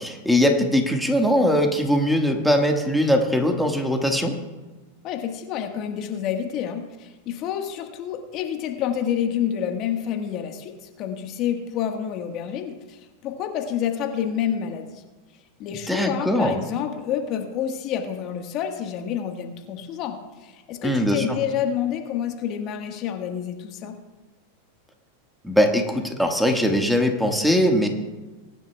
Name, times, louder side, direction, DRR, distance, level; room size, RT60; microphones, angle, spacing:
voice 1, 0.0-4.4 15.9-16.5 20.8-21.4 25.4-27.9, equal, ahead, 2 dB, 1.6 m, -21 dB
voice 2, 5.0-15.0 15.6-23.9, left 9 dB, 45° left, 4 dB, 1.4 m, -28 dB
22.0 x 11.0 x 2.3 m, 1.2 s
hypercardioid pair, 95°, 0 cm